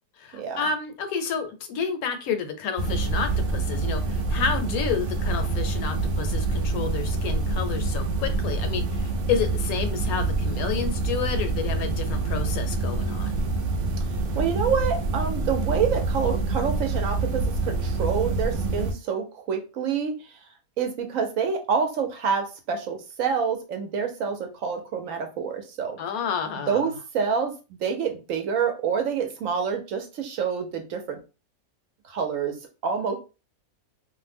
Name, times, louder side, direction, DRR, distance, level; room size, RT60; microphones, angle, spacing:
voice 1, 0.2-13.4 26.0-26.9, left 6 dB, 80° left, 1.0 m, -30 dB
sound 1, 2.8-18.9, right 3 dB, 85° right, 0.4 m, -26 dB
voice 2, 14.4-20.1 20.8-26.0 26.7-27.5 27.8-31.2 32.1-32.5 32.8-33.2, right 6 dB, 70° right, 0.9 m, -27 dB
2.5 x 2.1 x 3.3 m
omnidirectional pair, 1.6 m